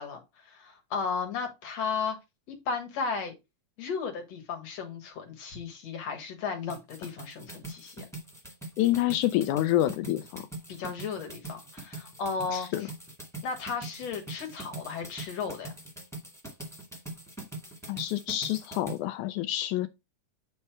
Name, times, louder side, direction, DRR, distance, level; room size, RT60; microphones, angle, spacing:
voice 1, 0.0-2.2 2.5-3.3 3.8-8.1 10.7-12.9 13.4-15.7, left 5 dB, 60° left, 2.6 m, -35 dB
sound 1, 6.7-19.0, right 2 dB, ahead, 1.1 m, -42 dB
voice 2, 8.8-10.4 12.5-12.9 17.9-19.9, left 14 dB, 80° left, 1.9 m, -27 dB
9.5 x 3.3 x 4.5 m
omnidirectional pair, 3.6 m